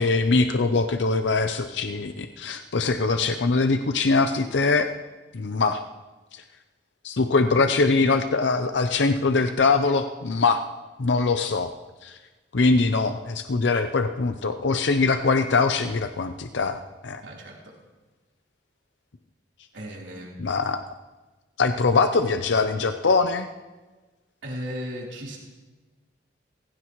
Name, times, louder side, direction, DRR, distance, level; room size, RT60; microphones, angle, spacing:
voice 1, 0.0-4.9 5.3-5.8 6.3-6.4 7.0-10.6 11.0-11.7 12.0-12.2 12.5-17.2 20.4-20.8 21.6-23.5, left 3 dB, 80° left, 8 dB, 0.6 m, -22 dB
voice 2, 17.2-17.8 19.7-20.4 24.4-25.4, equal, 80° right, -3 dB, 3.7 m, -36 dB
22.0 x 16.0 x 3.1 m, 1.2 s
head